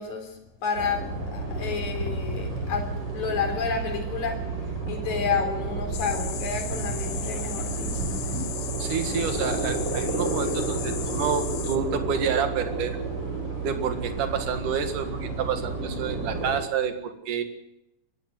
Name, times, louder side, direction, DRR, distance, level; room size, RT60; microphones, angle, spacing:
voice 1, 0.0-4.4 4.9-8.2, left 5 dB, 60° left, 3 dB, 4.9 m, -30 dB
sound 1, 0.8-16.6, right 3 dB, 40° right, 7.4 m, -31 dB
sound 2, 5.9-11.8, left 10 dB, 85° left, 3.0 m, -36 dB
voice 2, 8.8-13.0 13.6-17.4, right 7 dB, 70° right, 7 dB, 3.4 m, -29 dB
23.5 x 15.0 x 7.8 m, 0.86 s
omnidirectional pair, 3.8 m